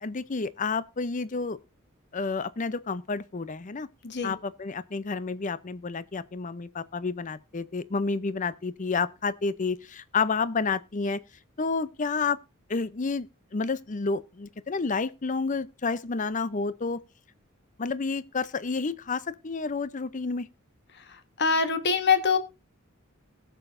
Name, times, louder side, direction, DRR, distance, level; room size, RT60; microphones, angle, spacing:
voice 1, 0.0-1.6 2.1-3.9 4.2-11.2 11.6-12.4 12.7-13.3 13.5-17.0 17.8-20.5, left 4 dB, 40° left, 0.6 m, -30 dB
voice 2, 4.0-4.4 21.1-22.4, left 5 dB, 55° left, 1.4 m, -24 dB
20.0 x 6.9 x 2.6 m
head